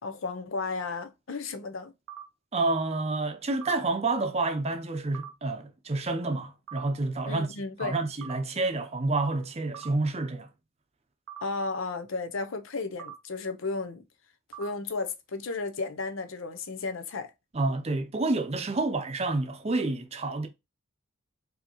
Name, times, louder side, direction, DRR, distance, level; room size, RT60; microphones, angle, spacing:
voice 1, 0.0-1.9 7.3-8.0 11.4-14.0 14.6-17.3, left 3 dB, 65° left, 0.6 m, -34 dB
sound 1, 2.1-2.2 3.6-3.8 5.1-5.3 6.7-6.8 8.2-8.4 9.7-9.9 11.3-11.4 13.0-13.1 14.5-14.7, right 10 dB, 80° right, 0.7 m, -41 dB
voice 2, 2.5-10.5 17.5-20.5, right 2 dB, 30° right, 0.6 m, -29 dB
4.7 x 2.8 x 2.9 m
head